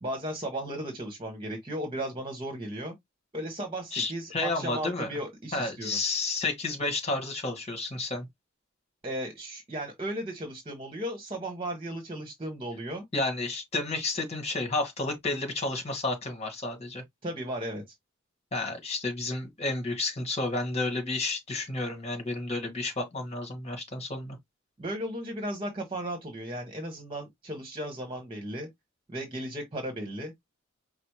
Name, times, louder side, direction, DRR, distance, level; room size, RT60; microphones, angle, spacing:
voice 1, 0.0-2.9 3.3-6.0 9.0-13.0 17.2-17.8 24.8-28.7 29.1-30.3, right 1 dB, 25° right, 1.2 m, -35 dB
voice 2, 3.9-5.1 5.5-8.3 13.1-17.0 18.5-24.4, left 2 dB, 30° left, 1.7 m, -31 dB
5.0 x 2.0 x 4.7 m
head